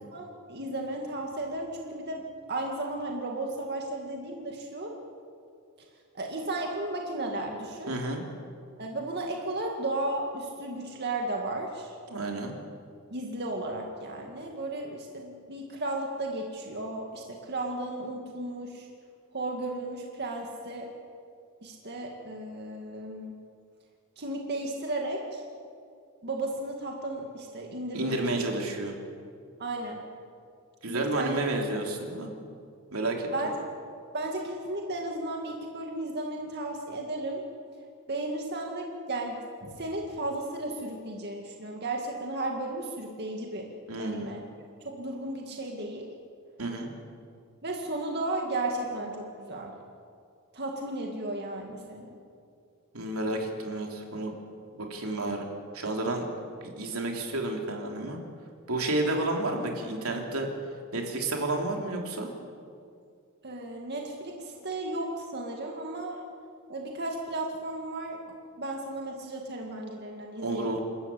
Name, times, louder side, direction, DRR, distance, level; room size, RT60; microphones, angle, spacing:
voice 1, 0.1-2.2 2.5-4.9 6.1-7.9 8.8-12.0 13.1-18.9 19.3-20.9 21.6-23.4 24.2-25.4 26.2-28.2 29.6-30.0 30.9-31.5 33.3-33.5 34.1-37.4 38.1-43.7 44.0-44.4 44.8-46.1 47.6-49.7 50.5-52.1 63.4-66.2 66.7-68.2 68.6-70.8, right 2 dB, 50° right, 1 dB, 2.2 m, -34 dB
voice 2, 7.9-8.2 12.1-12.5 27.9-29.0 30.8-32.3 32.9-33.3 43.9-44.3 46.6-46.9 52.9-54.3 54.7-55.5 55.7-56.2 56.6-58.2 58.7-60.5 60.9-62.3 70.4-70.8, right 2 dB, 80° right, 1 dB, 3.3 m, -31 dB
28.5 x 13.5 x 8.6 m, 2.3 s
head